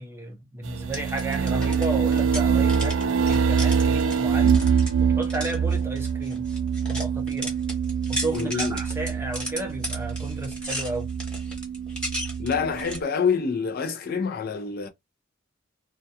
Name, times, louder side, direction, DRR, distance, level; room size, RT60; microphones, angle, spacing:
voice 1, 0.0-4.6 5.2-6.5 6.9-7.5 8.1-11.1, right 2 dB, 10° right, 0.5 m, -33 dB
sound 1, 0.6-13.0, right 6 dB, 70° right, 0.3 m, -25 dB
sound 2, 0.8-13.0, equal, 5° left, 0.9 m, -36 dB
voice 2, 8.3-8.8 12.4-14.9, left 5 dB, 50° left, 0.4 m, -26 dB
2.3 x 2.2 x 2.7 m
head